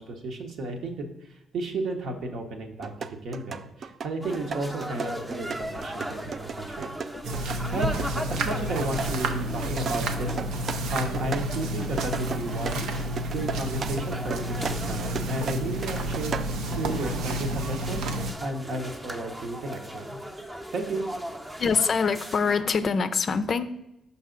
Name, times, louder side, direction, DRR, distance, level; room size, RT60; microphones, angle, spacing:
voice 1, 0.0-2.9 3.2-6.9 7.4-12.9 13.3-16.3 16.6-20.2 20.7-21.0, right 2 dB, 70° right, 4 dB, 1.0 m, -33 dB
sound 1, 2.8-16.6, right 5 dB, 50° right, 0.3 m, -36 dB
sound 2, 4.2-22.6, equal, 15° right, 0.7 m, -38 dB
sound 3, 7.2-18.3, right 1 dB, 85° right, 0.6 m, -30 dB
voice 2, 21.6-23.7, left 5 dB, 45° left, 12 dB, 0.4 m, -24 dB
5.6 x 5.4 x 3.9 m, 0.91 s
cardioid pair, 90°, 0 cm